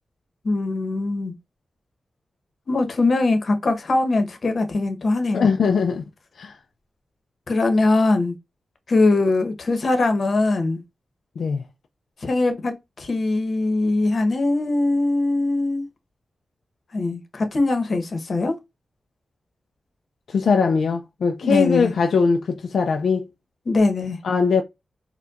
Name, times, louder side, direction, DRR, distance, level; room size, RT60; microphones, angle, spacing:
voice 1, 0.4-1.3 2.7-5.5 7.5-8.3 8.9-10.8 12.2-15.8 16.9-18.5 21.4-21.9 23.7-24.2, left 2 dB, 55° left, 0.9 m, -21 dB
voice 2, 5.3-6.0 6.4-6.6 11.4-11.6 20.3-23.3 24.2-24.6, left 5 dB, 80° left, 0.3 m, -21 dB
4.4 x 2.2 x 2.4 m
cardioid pair, 80°, 0 cm